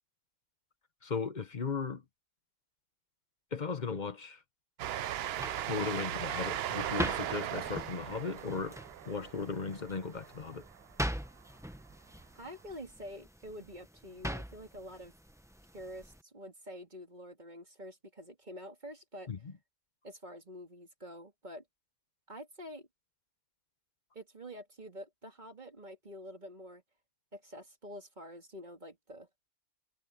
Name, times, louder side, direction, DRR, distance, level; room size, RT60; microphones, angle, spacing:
voice 1, 1.0-2.0 3.5-4.4 5.7-8.8 9.0-10.7 19.3-19.5, left 5 dB, 35° left, 1.0 m, -36 dB
Train, 4.8-11.0, right 12 dB, 65° right, 0.6 m, -38 dB
sound 1, 5.0-16.2, equal, 5° right, 0.7 m, -43 dB
voice 2, 12.3-15.1 15.7-19.3 20.0-21.6 22.3-22.9 24.1-26.8 27.3-29.3, equal, 30° right, 2.6 m, -47 dB
omnidirectional pair, 1.5 m